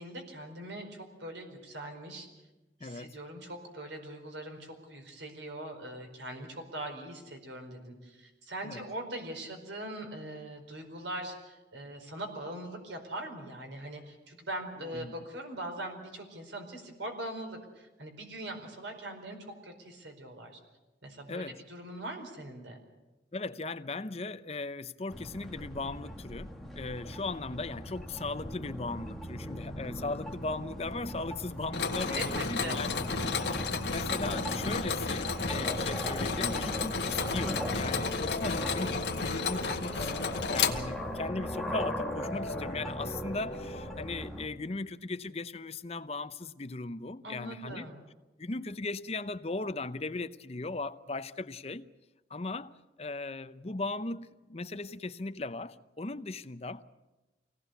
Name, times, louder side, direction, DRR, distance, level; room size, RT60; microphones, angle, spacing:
voice 1, 0.0-2.3 2.8-20.6 21.0-22.8 32.1-32.8 47.2-48.0, right 1 dB, 85° right, 4.7 m, -41 dB
voice 2, 2.8-3.2 8.6-8.8 14.8-15.1 21.3-21.6 23.3-33.0 33.3-47.9 48.4-51.9 52.3-52.7 53.0-56.9, left 3 dB, 35° left, 0.7 m, -38 dB
sound 1, 25.1-44.5, equal, ahead, 1.5 m, -39 dB
Mechanisms, 31.7-41.3, left 5 dB, 70° left, 1.7 m, -33 dB
sound 2, 37.4-44.0, left 1 dB, 50° left, 2.0 m, -42 dB
25.0 x 18.0 x 8.1 m
head